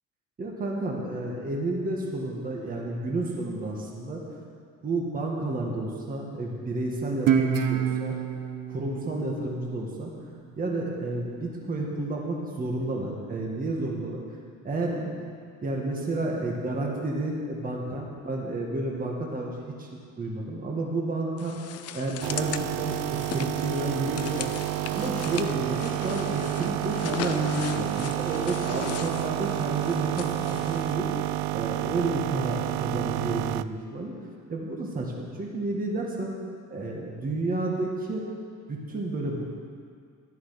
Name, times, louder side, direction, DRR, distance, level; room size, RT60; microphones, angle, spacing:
voice 1, 0.4-4.2 4.8-8.2 8.7-10.1 10.6-14.2 14.6-15.1 15.6-19.9 20.2-21.5 21.9-24.5 24.9-31.1 31.5-34.1 34.5-36.3 36.7-38.2 38.7-39.4, right 2 dB, 25° right, -2 dB, 1.8 m, -31 dB
Guitar, 7.3-10.5, right 8 dB, 65° right, 1.0 m, -28 dB
sound 1, 21.4-31.0, left 10 dB, 50° left, 0.6 m, -39 dB
sound 2, 22.2-33.6, right 17 dB, 85° right, 0.5 m, -30 dB
13.0 x 11.5 x 5.8 m, 2.2 s
cardioid pair, 155°, 33 cm